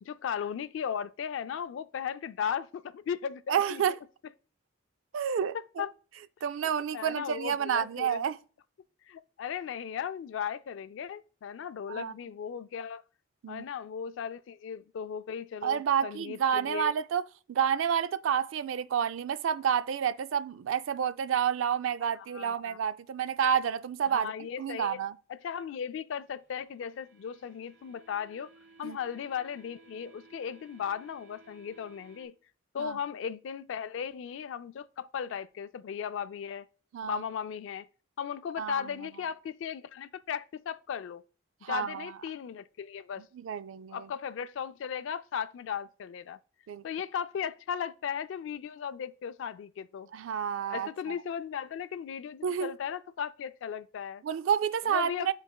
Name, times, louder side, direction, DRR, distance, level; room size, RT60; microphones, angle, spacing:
voice 1, 0.0-3.8 5.2-5.3 5.8-5.9 6.9-8.2 9.1-13.0 13.5-16.9 22.3-22.8 24.1-25.0 25.3-28.5 28.8-32.3 32.7-36.7 37.0-37.9 38.2-41.2 41.7-43.2 43.9-46.4 46.8-50.1 50.7-54.2 54.8-55.3, left 8 dB, 70° left, 0.3 m, -36 dB
voice 2, 3.5-3.9 5.1-5.8 6.4-8.4 11.9-12.1 13.4-13.6 15.6-17.2 17.5-24.3 24.6-25.1 28.8-29.0 32.8-33.0 36.9-37.2 38.6-38.9 41.6-42.1 43.4-44.1 46.7-46.8 50.1-51.1 52.4-52.7 54.2-55.3, right 8 dB, 75° right, 0.3 m, -29 dB
sound 1, 26.3-32.3, right 3 dB, 60° right, 1.2 m, -59 dB
12.0 x 4.0 x 2.2 m
head